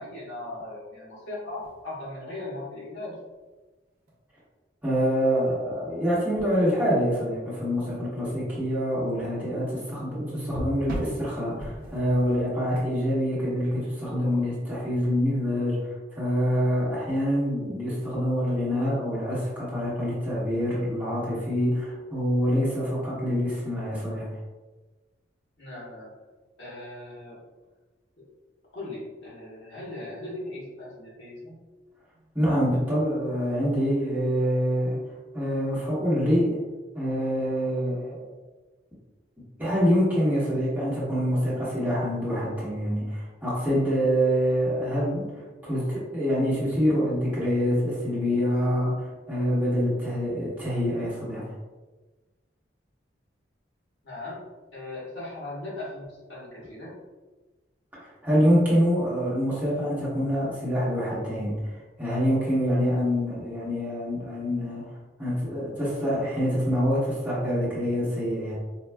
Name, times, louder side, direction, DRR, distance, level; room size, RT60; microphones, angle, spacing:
voice 1, 0.0-3.1 25.6-26.1 26.6-27.4 28.7-31.5 32.1-32.3 54.0-54.5 54.7-56.9, left 2 dB, 80° left, -6 dB, 1.2 m, -38 dB
sound 1, 1.4-1.8 3.3-3.4 4.1-4.2 6.4-7.2 7.7-8.0 10.4-14.1 17.9-18.1, equal, 50° right, 0.6 m, -38 dB
voice 2, 4.8-24.3 32.3-35.0 35.3-36.5 36.9-38.2 39.6-45.2 45.6-51.5 58.2-61.7 62.0-64.8 65.2-68.5, equal, 10° right, -9 dB, 1.0 m, -26 dB
4.3 x 2.2 x 2.2 m, 1.2 s
head